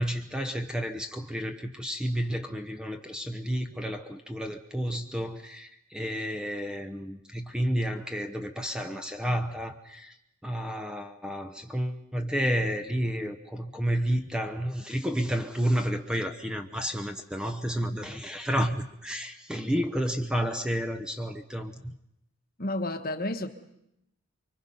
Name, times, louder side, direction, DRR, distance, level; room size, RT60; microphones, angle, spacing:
voice 1, 0.0-10.1 10.4-21.9, equal, 5° right, 0.8 m, -31 dB
voice 2, 22.6-23.5, left 1 dB, 40° left, 1.2 m, -31 dB
25.0 x 24.0 x 5.5 m
head